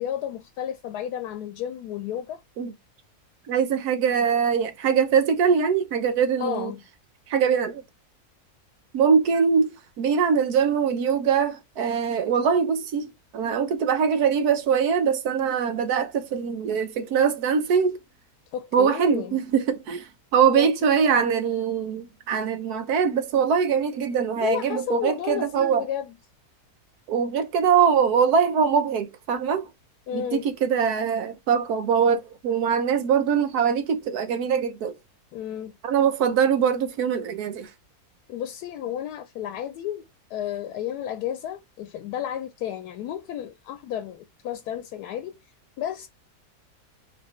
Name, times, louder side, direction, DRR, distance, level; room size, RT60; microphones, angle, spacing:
voice 1, 0.0-2.4 6.4-6.8 18.5-19.4 20.5-21.3 24.4-26.2 30.1-30.5 35.3-35.8 38.3-45.4 45.8-46.1, left 10 dB, 80° left, 1.1 m, -32 dB
voice 2, 3.5-6.7 7.3-7.8 8.9-18.0 18.7-25.8 27.1-29.7 30.1-34.9 35.8-37.7, right 7 dB, 75° right, 1.3 m, -22 dB
4.3 x 3.1 x 3.0 m
omnidirectional pair, 1.7 m